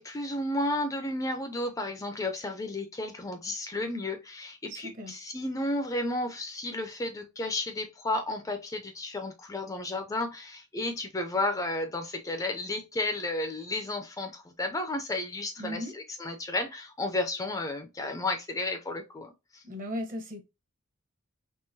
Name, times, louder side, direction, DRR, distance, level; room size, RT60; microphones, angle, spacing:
voice 1, 0.0-19.6, left 2 dB, 15° left, 0.4 m, -33 dB
voice 2, 4.7-5.1 15.6-15.9 19.6-20.4, equal, 40° right, 0.9 m, -36 dB
3.6 x 2.9 x 2.6 m
head